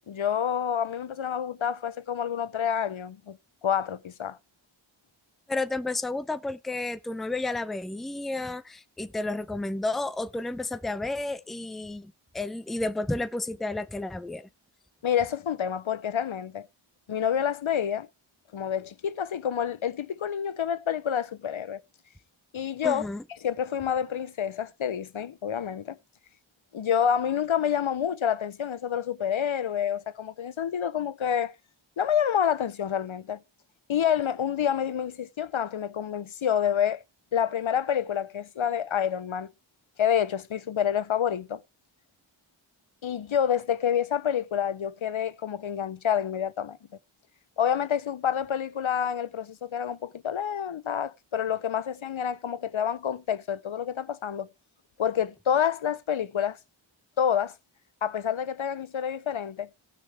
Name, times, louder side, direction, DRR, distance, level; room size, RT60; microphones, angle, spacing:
voice 1, 0.1-3.4 3.6-4.4 15.0-16.7 17.1-18.1 18.5-21.8 22.5-23.1 23.4-26.0 26.7-31.5 32.0-33.4 33.9-37.0 37.3-39.5 40.0-41.6 43.0-46.8 47.6-54.5 55.0-56.6 57.2-57.5 58.0-59.7, left 8 dB, 70° left, 0.7 m, -28 dB
voice 2, 5.5-14.5 22.8-23.2, left 2 dB, ahead, 0.5 m, -31 dB
17.0 x 6.4 x 3.3 m
wide cardioid pair, 50°, 50 cm